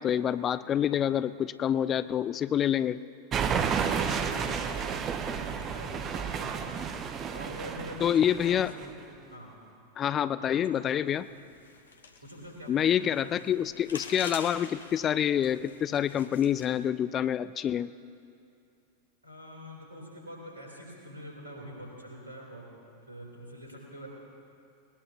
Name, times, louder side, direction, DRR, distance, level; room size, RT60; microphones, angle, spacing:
voice 1, 0.0-3.0 8.0-8.7 10.0-11.3 12.7-17.9, left 9 dB, 25° left, 16 dB, 0.4 m, -27 dB
sound 1, 3.3-8.8, right 6 dB, 30° right, 0.9 m, -31 dB
voice 2, 3.8-6.8 7.3-9.0 9.3-9.5 10.4-10.8 12.2-13.3 19.2-22.7 23.1-24.1, equal, 80° right, -2 dB, 3.7 m, -45 dB
sound 2, 11.1-16.9, left 4 dB, 70° left, 1.1 m, -46 dB
20.0 x 20.0 x 3.0 m, 2.5 s
figure-of-eight pair, 90°, 0 cm